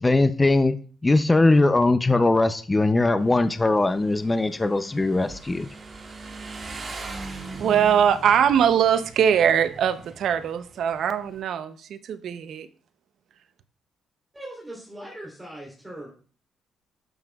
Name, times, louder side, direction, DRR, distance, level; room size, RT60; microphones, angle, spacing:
voice 1, 0.0-0.8 1.0-5.7, left 2 dB, 20° left, 0.5 m, -20 dB
Motorcycle, 3.2-11.4, right 3 dB, 40° right, 1.9 m, -41 dB
voice 2, 7.5-12.7, right 8 dB, 70° right, 0.7 m, -22 dB
voice 3, 14.3-16.1, right 1 dB, 15° right, 3.3 m, -40 dB
12.5 x 7.0 x 2.4 m
cardioid pair, 90°, 0 cm